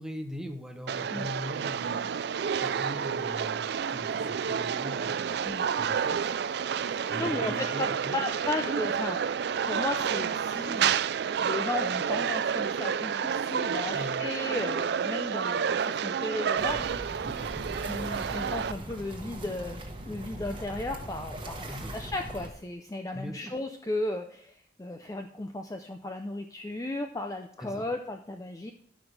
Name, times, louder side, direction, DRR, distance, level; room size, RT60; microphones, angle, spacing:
voice 1, 0.0-2.2 2.6-5.5 5.7-6.4 7.1-8.2 13.9-14.2 17.2-17.7 21.6-22.0 23.1-23.6 27.6-27.9, equal, 5° right, 4 dB, 0.9 m, -41 dB
sound 1, 0.9-18.7, right 7 dB, 60° right, 0.3 m, -30 dB
voice 2, 6.9-9.2 9.6-10.9 11.4-17.3 17.8-19.8 20.1-28.7, left 2 dB, 15° left, 5 dB, 0.4 m, -35 dB
sound 2, 16.6-22.5, right 1 dB, 25° right, 1.2 m, -40 dB
13.5 x 6.1 x 3.3 m, 0.67 s
head